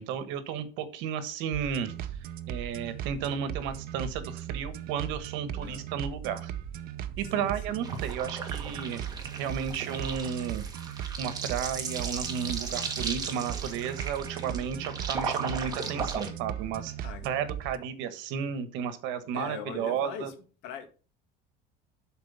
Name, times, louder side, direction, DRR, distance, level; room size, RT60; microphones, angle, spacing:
voice 1, 0.0-1.9 2.5-6.5 7.2-9.0 9.4-10.6 11.2-16.9 17.2-20.3, right 8 dB, 70° right, 1.3 m, -33 dB
sound 1, 1.5-17.8, right 10 dB, 50° right, 0.7 m, -38 dB
voice 2, 5.5-5.8 7.3-7.9 16.2-16.4 17.0-17.3 19.3-20.3 20.6-20.9, left 7 dB, 70° left, 1.9 m, -41 dB
sound 2, 7.8-16.3, right 5 dB, 20° right, 1.7 m, -37 dB
11.5 x 4.5 x 5.4 m
cardioid pair, 165°, 20 cm